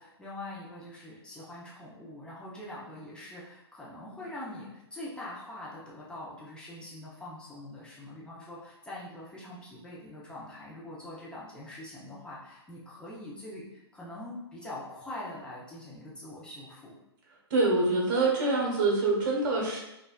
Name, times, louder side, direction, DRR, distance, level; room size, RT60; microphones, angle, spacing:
voice 1, 0.0-16.9, left 1 dB, 5° left, -7 dB, 0.7 m, -43 dB
voice 2, 17.5-19.8, right 3 dB, 50° right, -2 dB, 1.1 m, -25 dB
4.0 x 2.4 x 2.3 m, 0.90 s
figure-of-eight pair, 110°, 14 cm